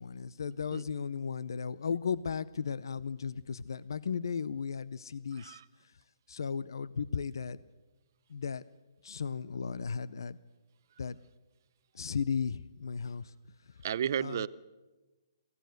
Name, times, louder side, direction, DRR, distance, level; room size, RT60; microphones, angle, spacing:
voice 1, 0.0-5.6 6.3-7.6 8.3-8.6 9.0-10.4 11.0-11.2 11.9-13.3 14.2-14.5, left 6 dB, 75° left, 18 dB, 0.7 m, -35 dB
voice 2, 13.8-14.5, right 9 dB, 50° right, 15 dB, 0.7 m, -33 dB
24.0 x 16.5 x 6.6 m, 1.2 s
hypercardioid pair, 155°, 2 cm